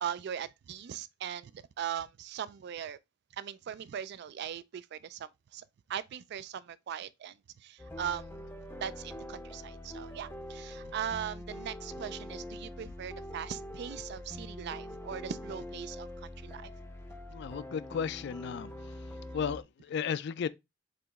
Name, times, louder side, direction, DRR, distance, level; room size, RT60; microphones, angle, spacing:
voice 1, 0.0-3.0 3.3-8.3 8.8-16.7, right 9 dB, 60° right, 0.3 m, -40 dB
sound 1, 7.8-19.6, left 1 dB, 10° left, 0.5 m, -44 dB
voice 2, 17.3-18.7 19.3-20.5, left 7 dB, 60° left, 0.3 m, -34 dB
4.9 x 2.9 x 3.5 m
head